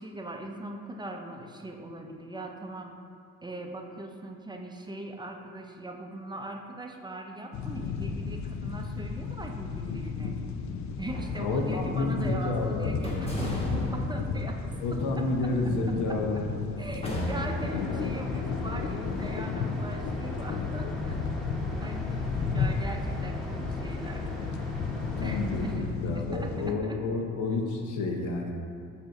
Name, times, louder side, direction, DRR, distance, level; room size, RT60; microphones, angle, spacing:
voice 1, 0.0-3.0 3.4-10.4 11.0-13.6 13.9-15.3 16.1-16.2 16.8-21.2 21.8-24.3 25.2-27.0, right 2 dB, 15° right, 2 dB, 0.5 m, -40 dB
sound 1, 7.5-26.7, left 5 dB, 70° left, 0.5 m, -34 dB
sound 2, 10.9-12.3 13.0-16.5 17.0-18.0, equal, 20° left, 1.1 m, -36 dB
voice 2, 11.3-12.9 14.8-16.4 22.4-22.7 25.0-28.5, left 3 dB, 85° left, 1 dB, 0.9 m, -30 dB
sound 3, 17.2-25.8, equal, ahead, 0.8 m, -39 dB
7.0 x 2.6 x 5.2 m, 2.2 s
cardioid pair, 90°, 30 cm